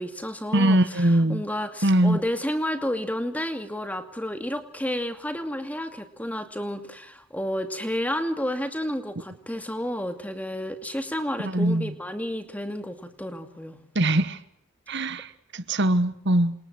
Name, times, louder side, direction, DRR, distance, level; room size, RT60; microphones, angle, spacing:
voice 1, 0.0-13.8 14.9-15.0, equal, 5° left, 2.4 m, -31 dB
voice 2, 0.5-1.4 1.8-2.2 11.4-11.9 13.9-14.4 14.9-16.5, right 1 dB, 55° right, 1.3 m, -22 dB
28.0 x 27.5 x 6.2 m
head